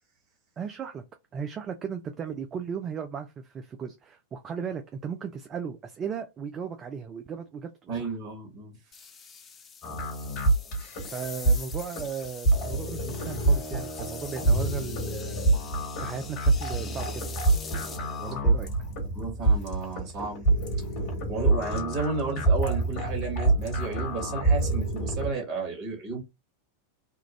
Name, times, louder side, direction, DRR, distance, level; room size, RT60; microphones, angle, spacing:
voice 1, 0.6-1.0 1.3-8.1 11.1-15.4 16.0-17.2 18.2-18.7, right 6 dB, 25° right, 0.4 m, -36 dB
voice 2, 7.9-8.7 19.1-20.5 21.3-26.2, right 4 dB, 40° right, 1.7 m, -32 dB
sound 1, 8.9-18.3, left 6 dB, 25° left, 0.6 m, -44 dB
sound 2, 9.8-25.3, right 3 dB, 45° left, 1.6 m, -26 dB
3.6 x 2.3 x 2.7 m
figure-of-eight pair, 90°, 0 cm